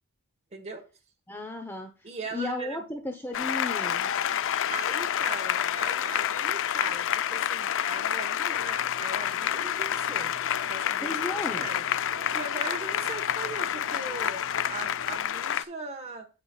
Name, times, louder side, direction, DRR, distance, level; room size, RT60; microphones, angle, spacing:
voice 1, 0.5-0.8 2.0-2.8 4.7-10.3 10.7-16.3, right 3 dB, 30° right, 1.4 m, -40 dB
voice 2, 1.3-1.9 2.3-4.1 11.0-11.7, left 2 dB, 10° left, 0.9 m, -34 dB
Applause, 3.3-15.6, left 10 dB, 60° left, 0.5 m, -28 dB
sound 1, 8.5-15.3, right 4 dB, 65° right, 1.3 m, -50 dB
9.2 x 8.4 x 2.4 m
head